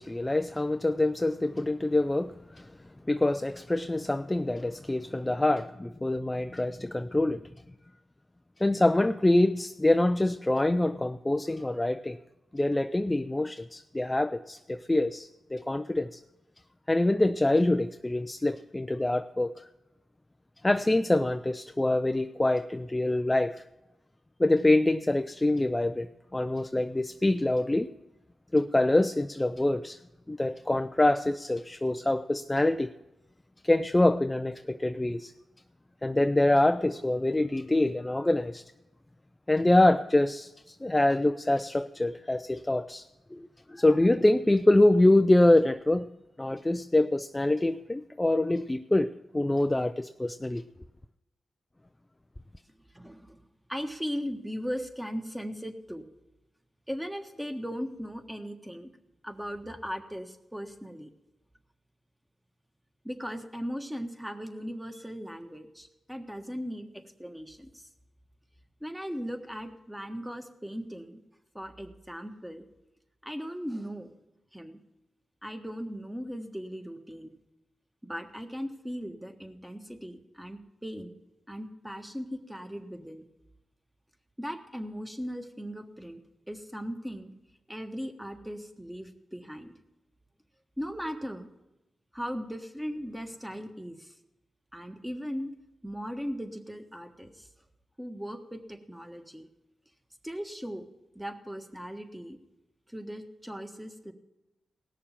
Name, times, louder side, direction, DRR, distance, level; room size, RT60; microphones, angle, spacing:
voice 1, 0.0-2.7 3.1-7.4 8.6-12.2 12.5-16.2 16.9-19.7 20.6-23.6 24.4-26.1 26.3-27.9 28.5-30.0 30.3-32.9 33.6-35.3 36.0-38.6 39.5-43.1 43.3-46.1 46.4-50.6, left 1 dB, 20° left, 0.4 m, -25 dB
voice 2, 52.9-53.4 53.7-56.0 56.9-58.9 59.2-61.1 63.0-67.9 68.8-71.2 71.5-72.7 73.2-74.1 74.5-74.8 75.4-77.4 78.0-81.2 81.5-83.2 84.4-86.2 86.5-87.3 87.7-89.7 90.8-91.5 92.1-94.1 94.7-95.5 95.8-97.5 98.0-99.5 100.2-100.8 101.1-102.4 102.9-104.1, equal, 5° right, 1.5 m, -38 dB
17.0 x 6.7 x 7.3 m
supercardioid pair, 50°, 0 cm